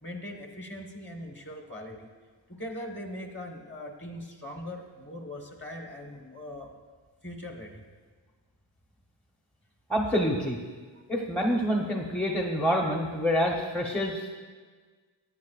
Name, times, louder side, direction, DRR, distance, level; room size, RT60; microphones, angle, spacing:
voice 1, 0.0-2.1 2.5-6.7 7.2-7.8, left 1 dB, 25° left, 2 dB, 1.3 m, -40 dB
voice 2, 9.9-10.6 11.1-14.3, equal, 5° left, 0 dB, 0.9 m, -27 dB
16.5 x 9.5 x 2.4 m, 1.5 s
wide cardioid pair, 100°, 48 cm